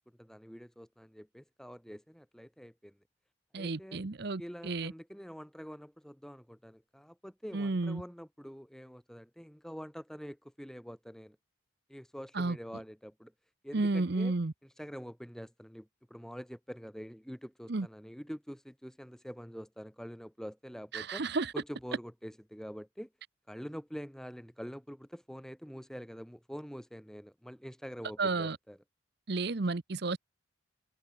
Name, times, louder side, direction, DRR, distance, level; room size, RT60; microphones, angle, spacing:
voice 1, 0.2-3.0 3.6-4.0 4.4-11.4 11.9-13.3 13.6-14.3 14.6-21.2 21.5-23.1 23.5-28.8, equal, ahead, 4.0 m, -46 dB
voice 2, 3.5-4.9 7.5-8.0 12.3-12.6 13.7-14.5 17.7-17.9 20.9-21.5 28.2-28.6 29.3-30.2, right 3 dB, 55° right, 0.8 m, -32 dB
head